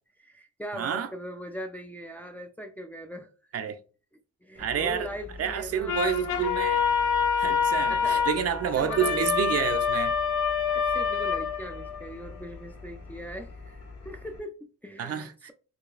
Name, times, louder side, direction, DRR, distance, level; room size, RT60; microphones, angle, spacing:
voice 1, 0.2-3.3 4.4-6.4 7.9-8.3 8.7-9.3 10.7-15.5, equal, 5° left, 0.4 m, -40 dB
voice 2, 0.7-1.1 3.5-3.8 4.6-5.1 5.4-6.8 7.4-10.1 15.0-15.3, right 8 dB, 50° right, 0.6 m, -29 dB
Engine, 4.6-14.4, left 3 dB, 55° left, 1.5 m, -45 dB
sound 1, 5.9-12.1, left 6 dB, 80° left, 0.6 m, -26 dB
4.7 x 2.2 x 2.4 m
cardioid pair, 90°, 30 cm